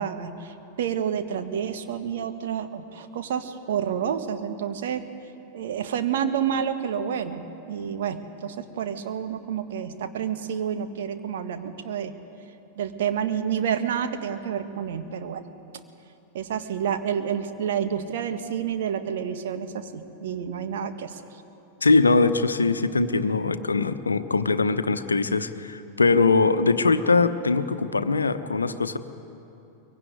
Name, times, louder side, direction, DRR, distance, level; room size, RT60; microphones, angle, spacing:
voice 1, 0.0-5.0 5.5-12.1 12.8-15.4 16.3-21.2, right 8 dB, 55° right, 7 dB, 1.8 m, -29 dB
voice 2, 21.8-29.0, left 3 dB, 75° left, 10 dB, 1.0 m, -22 dB
23.0 x 23.0 x 9.6 m, 2.8 s
figure-of-eight pair, 90°, 0 cm